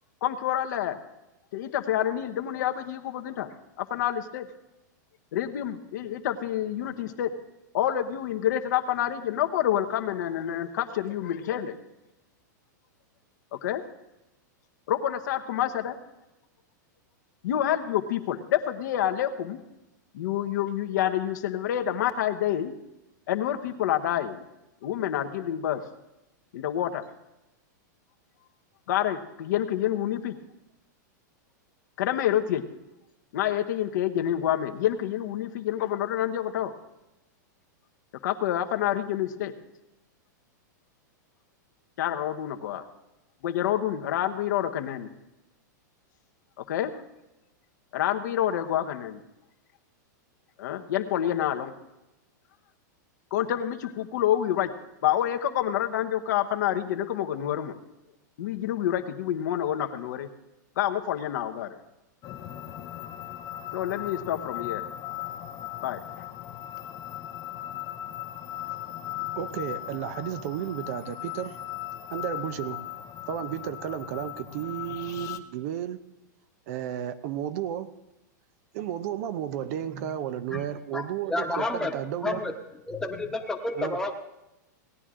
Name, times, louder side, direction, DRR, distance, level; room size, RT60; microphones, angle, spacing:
voice 1, 0.2-1.0 1.5-4.5 5.3-7.3 7.7-11.7 13.6-13.8 14.9-16.0 17.4-19.6 20.1-22.7 23.3-24.4 24.8-25.8 26.5-27.0 28.9-30.4 32.0-32.6 33.3-36.7 38.2-39.5 42.0-42.8 43.4-45.1 46.6-46.9 47.9-49.2 50.6-51.7 53.3-54.7 55.0-57.8 58.4-60.3 60.8-61.8 63.7-64.8 65.8-66.2, left 11 dB, 70° left, 5 dB, 1.1 m, -28 dB
sound 1, 62.2-75.4, left 13 dB, 35° left, 0.7 m, -38 dB
voice 2, 69.4-71.6 72.1-72.8 73.3-76.0 76.7-77.9 78.7-82.4 83.7-84.0, right 10 dB, 55° right, 13 dB, 0.7 m, -33 dB
voice 3, 81.3-81.9 82.2-82.5 82.9-84.1, left 2 dB, 5° left, 2 dB, 1.2 m, -30 dB
18.0 x 10.0 x 3.7 m, 0.94 s
hypercardioid pair, 135°, 10 cm